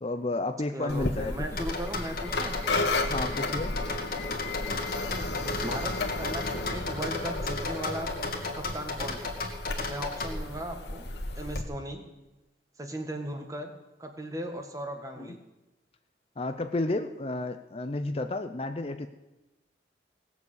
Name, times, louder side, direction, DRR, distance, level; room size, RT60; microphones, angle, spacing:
voice 1, 0.0-1.6 3.0-3.7 15.2-15.4 16.4-19.1, left 2 dB, 30° left, 8 dB, 0.6 m, -32 dB
voice 2, 0.7-2.6 5.6-8.1 8.5-9.3 9.9-12.0 12.8-13.7 14.0-15.4, right 1 dB, 20° right, 4 dB, 1.6 m, -37 dB
sound 1, 0.9-11.6, left 2 dB, 65° left, 1.5 m, -33 dB
sound 2, 1.6-10.3, left 3 dB, 50° left, 2.0 m, -34 dB
18.0 x 7.1 x 8.1 m, 1.0 s
head